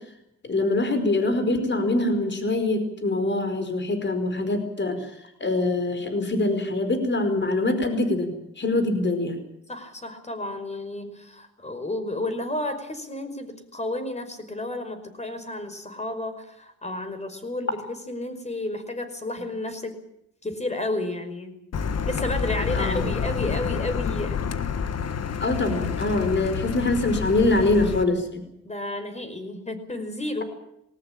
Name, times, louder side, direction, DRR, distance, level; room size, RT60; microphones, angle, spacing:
voice 1, 0.4-5.1 5.4-9.4 22.7-23.1 25.4-28.4, left 2 dB, 40° left, 8 dB, 4.8 m, -24 dB
voice 2, 9.7-20.0 20.4-21.6 22.1-24.5 28.6-30.4, left 2 dB, 25° left, 8 dB, 5.2 m, -32 dB
Car, 21.7-28.0, left 6 dB, 60° left, 1.6 m, -28 dB
20.5 x 19.0 x 8.9 m, 0.76 s
cardioid pair, 90°, 29 cm